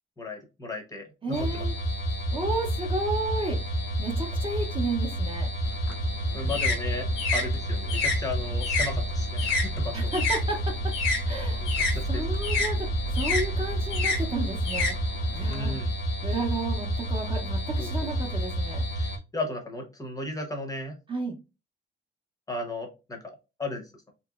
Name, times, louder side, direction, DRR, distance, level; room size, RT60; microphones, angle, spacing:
voice 1, 0.2-1.6 6.3-10.1 11.6-12.2 15.5-15.9 17.8-18.1 19.0-20.9 22.5-23.9, left 2 dB, 15° left, 3 dB, 0.7 m, -35 dB
voice 2, 1.2-1.7 2.3-5.5 9.9-10.7 11.3-11.7 12.1-14.9 15.3-15.8 16.2-18.8 21.1-21.4, right 2 dB, 25° right, 2 dB, 0.6 m, -32 dB
sound 1, 1.3-19.2, equal, 55° left, 0.7 m, -29 dB
sound 2, 5.7-10.4 10.7-15.6, left 3 dB, 85° left, 0.9 m, -29 dB
2.9 x 2.8 x 2.3 m, 0.28 s
wide cardioid pair, 160°, 20 cm